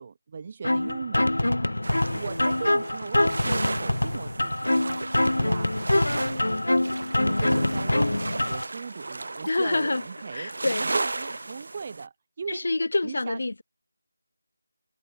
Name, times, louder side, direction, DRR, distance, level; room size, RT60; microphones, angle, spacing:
voice 1, 0.0-1.4 2.1-5.7 6.1-6.5 7.2-12.7 13.0-13.4, right 5 dB, 30° right, 1.6 m, -39 dB
sound 1, 0.6-8.6, left 1 dB, 75° left, 1.3 m, -24 dB
sound 2, 1.8-12.1, right 2 dB, 55° right, 2.4 m, -35 dB
voice 2, 9.5-10.0 10.3-10.8 12.5-13.6, left 2 dB, 60° left, 0.7 m, -26 dB
figure-of-eight pair, 165°, 0 cm